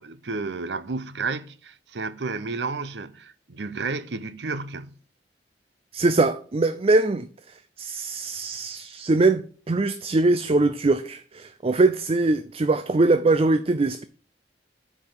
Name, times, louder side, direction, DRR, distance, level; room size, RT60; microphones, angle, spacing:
voice 1, 0.0-5.0, right 4 dB, 75° right, 0.7 m, -32 dB
voice 2, 5.9-7.3 7.8-14.0, right 2 dB, 35° right, 0.5 m, -22 dB
9.3 x 5.0 x 7.3 m
head